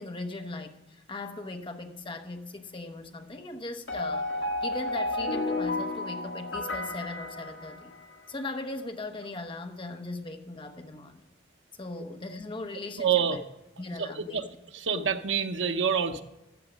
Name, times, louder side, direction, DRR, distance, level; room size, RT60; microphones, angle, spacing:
voice 1, 0.0-4.3 4.6-7.9 8.3-11.3 11.8-13.4 13.8-14.5, left 2 dB, 25° left, 6 dB, 0.9 m, -39 dB
sound 1, 3.9-8.2, left 2 dB, 75° left, 1.8 m, -32 dB
voice 2, 13.0-13.4 14.0-14.5 14.7-16.2, right 7 dB, 90° right, 9 dB, 0.8 m, -27 dB
14.0 x 7.3 x 5.1 m, 0.94 s
head